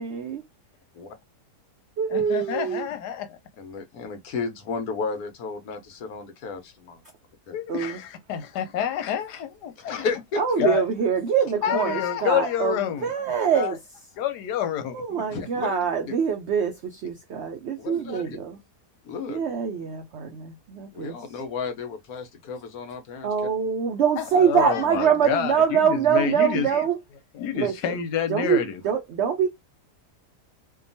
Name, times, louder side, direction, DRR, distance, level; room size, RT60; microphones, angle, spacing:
voice 1, 0.0-0.4 2.0-2.9 7.7-8.0 10.4-13.8 14.9-18.6 19.3-21.1 23.2-27.0 27.5-28.0 28.3-29.5, right 7 dB, 80° right, 0.6 m, -24 dB
voice 2, 2.1-3.4 7.5-10.1 10.6-10.8 11.6-13.1 13.5-13.7 14.2-15.2 17.8-17.9 24.2-26.8 27.3-28.8, left 9 dB, 90° left, 1.2 m, -28 dB
voice 3, 3.6-7.0 7.5-7.6 9.9-10.6 15.3-15.8 17.8-18.4 19.0-19.4 20.9-23.3, left 5 dB, 70° left, 1.2 m, -33 dB
2.8 x 2.2 x 2.6 m
omnidirectional pair, 1.7 m